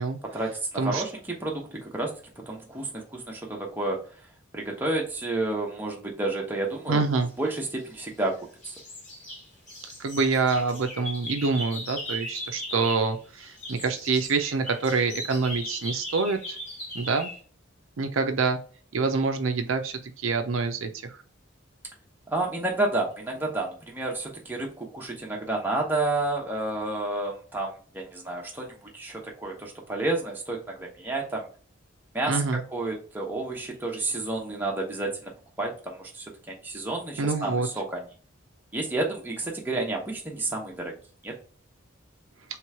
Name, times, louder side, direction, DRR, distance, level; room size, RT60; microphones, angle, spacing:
voice 1, 0.3-2.1 2.5-4.0 4.5-8.7 22.3-31.5 32.1-32.4 32.7-35.3 35.6-38.0 38.7-41.0 41.2-41.3, right 2 dB, 10° right, -2 dB, 0.8 m, -30 dB
voice 2, 6.9-7.3 10.0-16.6 16.9-17.3 18.0-18.6 18.9-21.2 32.3-32.6 37.2-37.7, right 4 dB, 75° right, 6 dB, 0.5 m, -26 dB
sound 1, 7.5-8.3 8.6-13.1 13.4-17.4, left 1 dB, 35° left, 1.3 m, -38 dB
3.2 x 3.1 x 4.6 m, 0.42 s
head